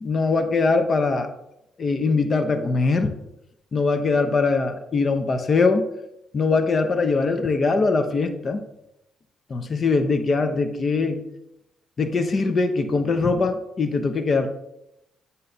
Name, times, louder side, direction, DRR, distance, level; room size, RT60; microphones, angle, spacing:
voice 1, 0.0-1.3 1.8-3.1 3.7-5.9 6.3-8.6 9.5-11.2 12.0-14.5, left 4 dB, 40° left, 7 dB, 0.7 m, -22 dB
9.8 x 5.4 x 2.7 m, 0.83 s
cardioid pair, 90°, 0 cm